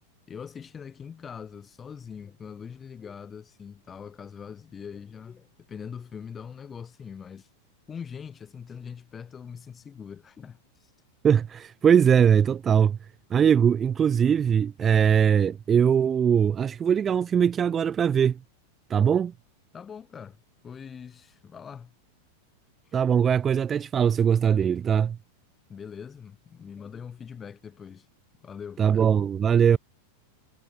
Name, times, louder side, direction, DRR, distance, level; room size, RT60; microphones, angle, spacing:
voice 1, 0.3-7.5 7.9-10.9 19.7-20.4 20.6-21.9 22.8-22.9 25.7-28.1 28.4-29.0, left 7 dB, 20° left, 2.7 m, -42 dB
voice 2, 11.2-13.0 13.3-18.4 18.9-19.3 22.9-25.2 28.8-29.8, right 8 dB, 20° right, 0.3 m, -21 dB
figure-of-eight pair, 90°, 0 cm